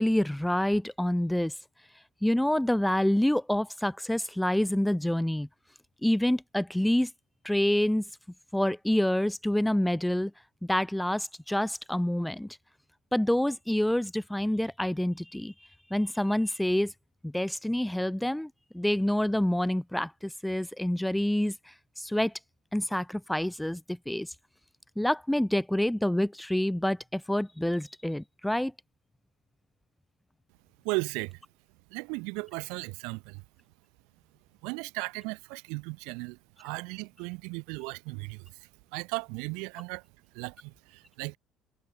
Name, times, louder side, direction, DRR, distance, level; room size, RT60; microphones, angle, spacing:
voice 1, 0.0-1.5 2.2-5.5 6.0-7.1 7.4-8.0 8.5-10.3 10.6-12.6 13.1-15.5 15.9-16.9 17.2-22.3 22.7-24.3 25.0-28.7, left 1 dB, 5° left, 0.3 m, -27 dB
voice 2, 30.8-31.4 31.9-33.4 34.6-38.5 38.9-40.0 40.3-41.4, right 30 dB, 65° right, 0.9 m, -36 dB
figure-of-eight pair, 55°, 0 cm